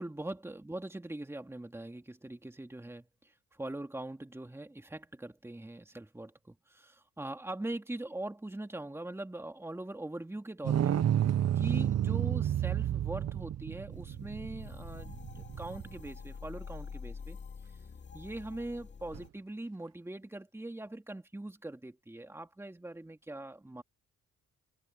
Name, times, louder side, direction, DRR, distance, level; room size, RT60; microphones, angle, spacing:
voice 1, 0.0-11.0 11.6-17.4 18.1-23.8, right 1 dB, 10° right, 2.4 m, -42 dB
sound 1, 10.6-16.1 19.1-19.2, right 10 dB, 55° right, 1.1 m, -31 dB
sound 2, 13.9-19.3, left 5 dB, 35° left, 2.4 m, -47 dB
cardioid pair, 90°, 30 cm